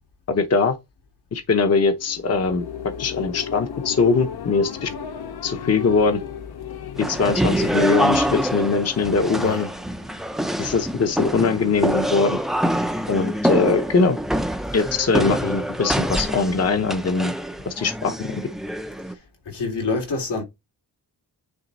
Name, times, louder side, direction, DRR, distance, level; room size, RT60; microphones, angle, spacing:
voice 1, 0.3-0.8 1.3-4.9 5.4-6.2 7.0-9.7 10.6-12.4 13.1-14.2 14.7-17.3 17.7-18.4, left 4 dB, 40° left, 0.8 m, -21 dB
sound 1, 1.9-10.5, left 8 dB, 70° left, 0.8 m, -35 dB
sound 2, 7.0-19.1, equal, ahead, 0.5 m, -25 dB
voice 2, 19.4-20.4, left 3 dB, 90° left, 3.1 m, -26 dB
9.5 x 3.4 x 4.1 m
wide cardioid pair, 170°, 40 cm